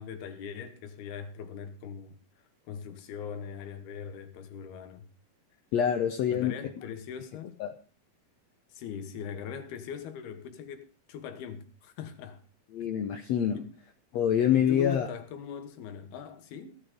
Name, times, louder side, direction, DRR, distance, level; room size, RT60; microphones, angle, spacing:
voice 1, 0.0-2.2 2.6-5.1 6.3-7.6 8.7-12.4 13.5-13.8 14.5-16.8, left 7 dB, 85° left, 3.4 m, -41 dB
voice 2, 5.7-6.6 7.6-7.7 12.7-13.6 14.1-15.1, left 9 dB, 70° left, 1.7 m, -26 dB
17.0 x 10.5 x 5.1 m
omnidirectional pair, 4.3 m